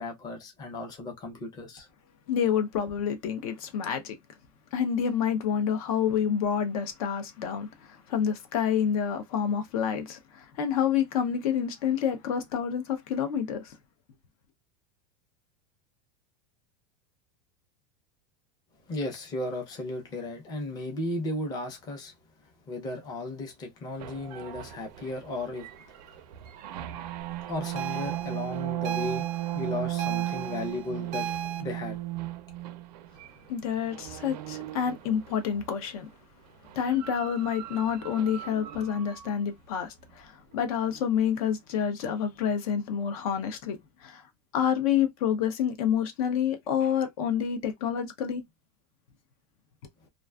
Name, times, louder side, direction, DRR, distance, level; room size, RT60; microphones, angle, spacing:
voice 1, 0.0-1.9 18.9-22.1 22.7-26.1 27.2-29.3 29.5-31.3 31.6-32.0, left 2 dB, 20° left, 0.6 m, -35 dB
voice 2, 2.3-4.1 4.7-13.8 33.5-36.1 36.8-44.2 44.5-48.4, left 8 dB, 60° left, 0.6 m, -28 dB
sound 1, 24.0-35.8 36.6-39.3, right 14 dB, 85° right, 0.5 m, -36 dB
sound 2, 27.8-31.6, right 7 dB, 35° right, 0.4 m, -36 dB
2.4 x 2.3 x 2.2 m
supercardioid pair, 170°, 21 cm